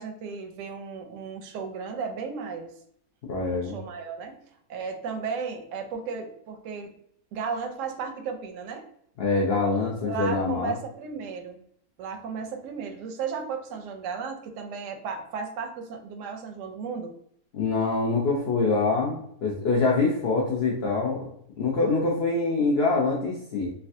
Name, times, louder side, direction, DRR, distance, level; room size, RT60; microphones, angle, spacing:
voice 1, 0.0-2.7 3.5-4.4 4.7-6.9 7.3-8.9 10.1-11.6 12.0-17.1, right 5 dB, 70° right, 4 dB, 0.8 m, -34 dB
voice 2, 3.3-3.7 9.2-10.7 17.5-21.2 21.6-23.7, left 3 dB, 65° left, -3 dB, 0.6 m, -25 dB
3.2 x 2.2 x 2.6 m, 0.69 s
omnidirectional pair, 1.6 m